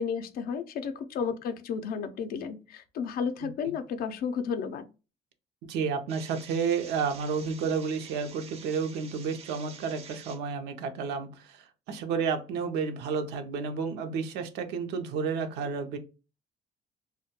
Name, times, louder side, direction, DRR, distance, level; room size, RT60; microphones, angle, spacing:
voice 1, 0.0-4.9, left 6 dB, 60° left, 0.4 m, -32 dB
voice 2, 3.4-3.7 5.7-16.0, right 5 dB, 85° right, 0.5 m, -31 dB
sound 1, 6.1-10.4, right 6 dB, 35° right, 0.4 m, -48 dB
2.2 x 2.1 x 2.8 m
cardioid pair, 110°, 17 cm